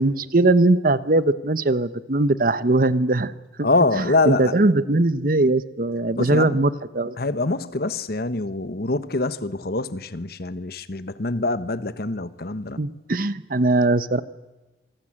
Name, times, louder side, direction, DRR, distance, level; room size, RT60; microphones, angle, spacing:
voice 1, 0.0-3.3 3.6-3.7 4.0-7.1 12.8-14.2, right 2 dB, 50° right, 0.9 m, -20 dB
voice 2, 3.6-4.5 6.2-6.6 7.2-12.8, left 2 dB, 55° left, 1.2 m, -24 dB
27.0 x 19.5 x 8.8 m
head